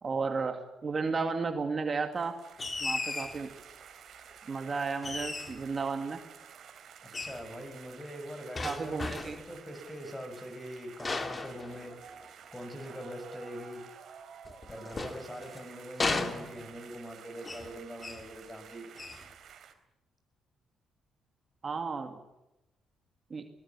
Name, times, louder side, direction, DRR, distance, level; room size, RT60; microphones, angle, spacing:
voice 1, 0.0-2.4 2.8-3.5 4.5-6.2 8.6-9.4 21.6-22.2 23.3-23.4, right 4 dB, 40° right, 5 dB, 2.4 m, -33 dB
sound 1, 1.9-19.7, right 8 dB, 65° right, 3.5 m, -52 dB
sound 2, 2.6-3.4 5.0-5.7 7.1-7.4 8.6-9.5 11.0-12.3 14.5-15.6 16.0-16.9 17.4-17.7 18.0-18.3 19.0-19.3, left 3 dB, 30° left, 2.6 m, -35 dB
voice 2, 7.0-11.9 12.5-13.8 14.7-18.9, equal, 10° left, 8 dB, 6.7 m, -43 dB
21.0 x 19.5 x 8.5 m, 0.94 s
cardioid pair, 90°, 0 cm